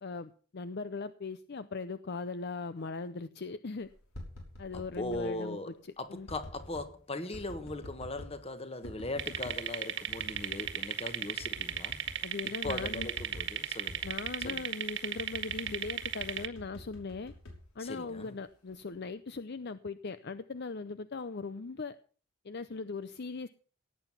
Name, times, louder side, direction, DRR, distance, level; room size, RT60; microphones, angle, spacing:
voice 1, 0.0-3.9 4.6-5.7 6.1-6.3 12.2-13.1 14.0-17.3 17.7-22.0 22.4-23.5, left 4 dB, 50° left, 0.6 m, -39 dB
sound 1, 3.9-5.3 6.3-6.9 7.3-8.4 8.8-9.6 10.1-10.8 11.1-11.2 11.4-12.2 12.6-13.6 13.9-14.6 15.2-18.3 18.7-19.1, left 1 dB, 75° left, 5.7 m, -47 dB
voice 2, 4.7-12.0 12.6-14.0 14.4-14.6 17.8-18.3, left 2 dB, 25° left, 1.4 m, -39 dB
sound 2, 9.2-16.5, right 9 dB, 55° right, 1.6 m, -36 dB
17.5 x 9.0 x 5.8 m
head